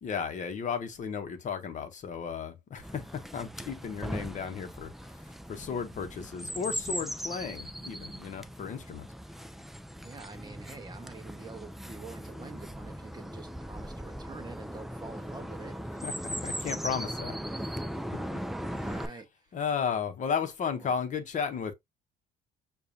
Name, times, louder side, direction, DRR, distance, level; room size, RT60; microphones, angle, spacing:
voice 1, 0.0-9.1 16.0-16.1 16.4-17.4 18.1-18.2 18.7-19.2 19.5-21.7, left 6 dB, 45° left, 0.9 m, -34 dB
Chirp tweet, 2.8-19.1, equal, ahead, 0.4 m, -39 dB
voice 2, 10.0-15.7 18.8-19.3 20.7-20.9, right 3 dB, 25° right, 1.1 m, -46 dB
6.7 x 2.3 x 2.7 m
cardioid pair, 110°, 17 cm